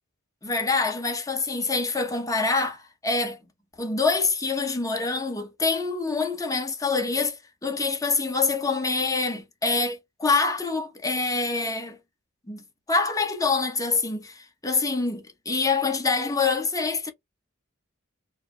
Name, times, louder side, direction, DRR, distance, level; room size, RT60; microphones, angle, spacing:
voice 1, 0.4-3.4 3.8-7.4 7.6-12.0 12.5-17.1, left 4 dB, 15° left, 1.0 m, -26 dB
4.6 x 2.0 x 3.3 m
head